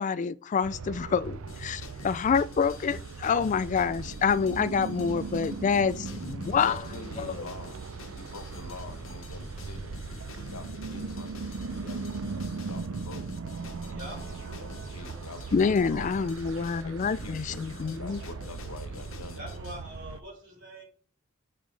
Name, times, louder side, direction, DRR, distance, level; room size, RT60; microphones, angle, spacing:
voice 1, 0.0-6.8 7.2-7.3 15.5-18.2, left 6 dB, 35° left, 0.3 m, -27 dB
sound 1, 0.6-20.2, right 4 dB, 70° right, 0.5 m, -39 dB
sound 2, 1.5-19.8, left 4 dB, 65° left, 1.2 m, -48 dB
voice 2, 6.6-7.8 8.1-10.0 10.3-13.3 13.8-16.2 16.8-19.7, left 3 dB, 85° left, 1.1 m, -46 dB
voice 3, 9.5-10.6 11.1-11.7 12.5-12.6 13.4-15.2 17.6-18.0 19.3-20.8, equal, 55° right, 2.9 m, -48 dB
sound 3, 14.1-18.5, equal, 35° right, 3.6 m, -52 dB
8.9 x 5.4 x 3.3 m
head